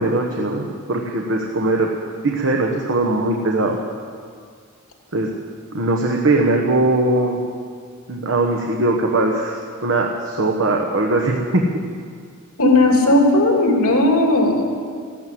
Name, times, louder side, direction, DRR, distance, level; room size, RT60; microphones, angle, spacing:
voice 1, 0.0-1.9 2.2-3.8 5.1-5.3 5.7-7.4 8.1-11.6, right 2 dB, 60° right, 1 dB, 1.2 m, -20 dB
voice 2, 12.6-14.7, left 2 dB, 75° left, 1 dB, 3.0 m, -15 dB
15.0 x 12.0 x 7.8 m, 2.1 s
head